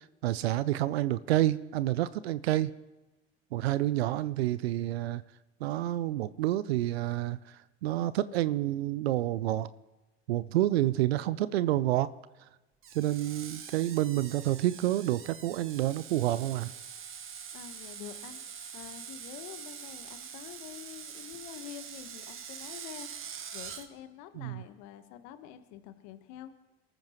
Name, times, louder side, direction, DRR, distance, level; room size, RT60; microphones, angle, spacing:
voice 1, 0.2-2.7 3.5-5.2 5.6-9.7 10.3-12.1 12.9-16.7 24.4-24.6, right 14 dB, 75° right, 17 dB, 0.6 m, -29 dB
Screech, 12.8-23.9, right 7 dB, 40° right, 1.5 m, -44 dB
voice 2, 17.5-18.4 18.7-23.1 23.5-26.5, left 11 dB, 65° left, 10 dB, 1.3 m, -47 dB
28.0 x 14.0 x 3.0 m, 1.1 s
hypercardioid pair, 65°, 31 cm